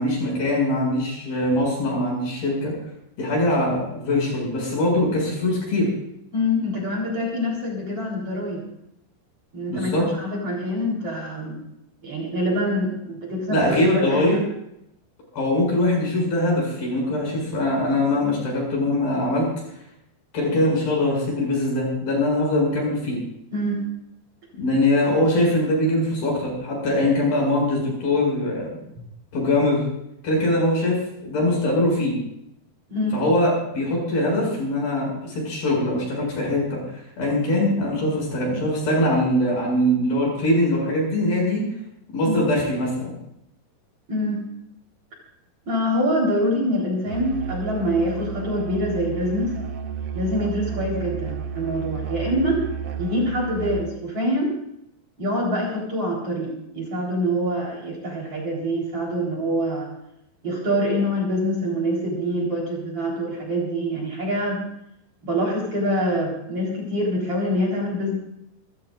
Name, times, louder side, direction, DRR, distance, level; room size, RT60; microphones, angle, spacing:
voice 1, 0.0-2.7 3.2-5.9 9.7-10.1 13.5-14.4 15.3-19.5 20.3-23.2 24.6-28.7 29.3-29.8 30.2-32.2 33.1-41.6 42.1-43.1, left 1 dB, 65° left, -2 dB, 9.1 m, -22 dB
voice 2, 6.3-8.6 9.5-11.6 12.0-14.2 23.5-23.8 32.9-33.2 42.2-42.4 44.1-44.4 45.7-49.5 50.1-52.6 53.0-54.5 55.2-59.9 60.4-64.6 65.2-68.1, equal, 35° right, -3 dB, 5.0 m, -25 dB
Musical instrument, 47.1-54.0, right 7 dB, 90° right, 1.2 m, -32 dB
28.5 x 15.0 x 2.6 m, 0.78 s
omnidirectional pair, 4.6 m